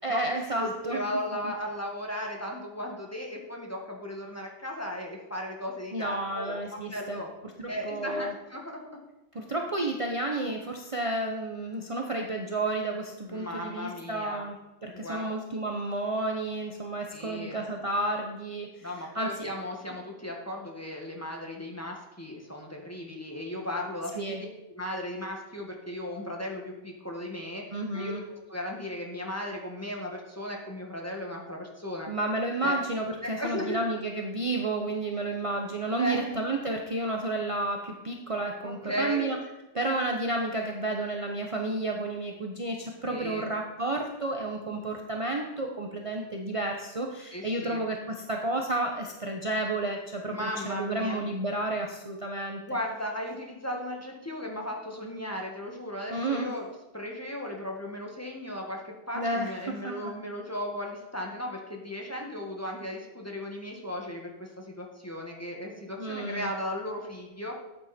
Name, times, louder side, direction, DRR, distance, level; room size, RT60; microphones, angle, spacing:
voice 1, 0.0-1.0 5.9-7.2 7.6-8.3 9.3-14.6 14.8-18.9 19.1-19.3 24.2-24.4 27.7-28.2 32.1-39.4 39.7-52.6 56.1-56.5 59.1-59.9 66.0-66.5, right 2 dB, 30° right, 1 dB, 1.0 m, -31 dB
voice 2, 0.6-7.3 7.7-8.8 13.3-14.4 15.0-15.3 17.1-17.6 18.8-24.5 24.7-27.6 27.9-32.1 32.6-32.8 33.2-33.8 36.0-36.3 38.6-39.4 43.1-43.5 47.3-47.8 50.3-51.2 52.6-56.7 56.9-67.5, left 1 dB, 10° left, 0 dB, 1.9 m, -36 dB
12.5 x 8.9 x 4.4 m, 1.0 s
omnidirectional pair, 1.2 m